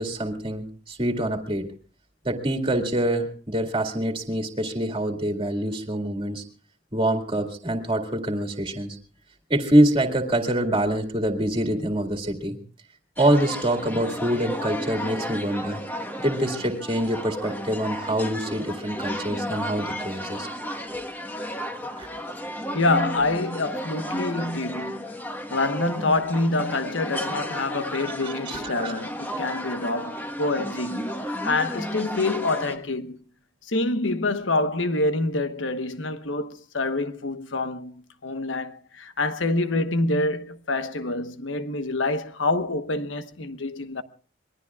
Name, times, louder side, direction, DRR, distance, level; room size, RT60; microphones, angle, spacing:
voice 1, 0.0-1.7 2.2-6.4 6.9-9.0 9.5-12.6 13.2-15.8 16.2-20.5 22.0-22.1 27.9-29.0, right 1 dB, 25° right, 2.1 m, -25 dB
sound 1, 13.2-32.8, equal, 10° left, 1.3 m, -33 dB
voice 2, 22.7-25.1 25.5-33.2 33.7-44.0, left 2 dB, 80° left, 1.2 m, -26 dB
27.0 x 21.5 x 2.4 m
head